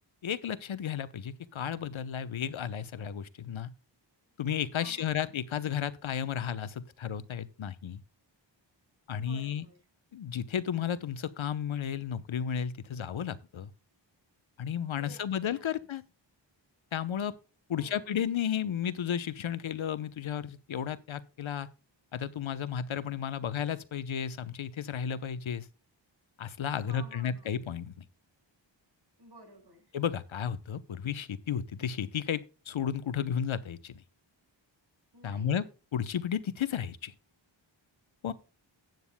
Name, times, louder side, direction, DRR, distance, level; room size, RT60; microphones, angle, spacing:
voice 1, 0.2-3.7 4.4-8.0 9.1-9.7 10.1-13.7 14.6-16.0 16.9-17.3 17.7-21.7 22.1-25.6 26.4-27.9 29.9-32.4 32.7-34.0 35.2-35.6 35.9-37.1 38.2-38.3, left 8 dB, 85° left, 0.9 m, -33 dB
voice 2, 4.7-5.3 9.1-9.8 14.9-15.9 17.7-18.2 26.8-27.6 29.2-29.9 35.1-35.6, right 2 dB, 55° right, 5.6 m, -54 dB
15.5 x 9.3 x 2.2 m
wide cardioid pair, 120°, 46 cm